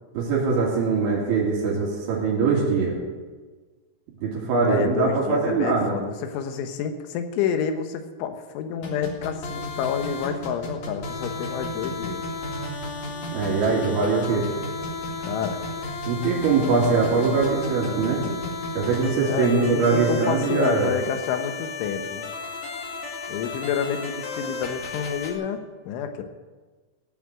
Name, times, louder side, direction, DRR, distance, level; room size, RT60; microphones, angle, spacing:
voice 1, 0.1-3.0 4.2-5.9 13.3-14.5 16.1-18.2 18.7-21.0, right 4 dB, 75° right, -4 dB, 4.9 m, -22 dB
voice 2, 4.6-12.2 15.2-15.6 19.2-22.3 23.3-26.2, left 7 dB, 80° left, 7 dB, 3.6 m, -29 dB
sound 1, 8.8-25.3, left 3 dB, 45° left, 2.7 m, -33 dB
17.5 x 7.5 x 8.9 m, 1.4 s
omnidirectional pair, 5.4 m